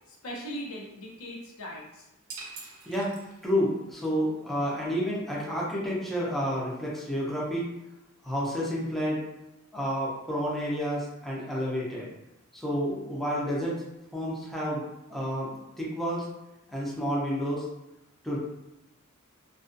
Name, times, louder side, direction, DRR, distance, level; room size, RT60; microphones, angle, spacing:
voice 1, 0.1-2.1, equal, 80° left, -3 dB, 0.7 m, -39 dB
sound 1, 2.3-3.8, right 4 dB, 85° right, 0.5 m, -44 dB
voice 2, 3.4-7.7 8.2-9.2 9.7-12.1 12.5-13.8 14.1-14.8 15.1-16.3 16.7-17.7 18.2-18.4, equal, ahead, -7 dB, 0.5 m, -30 dB
2.4 x 2.3 x 2.5 m, 0.93 s
head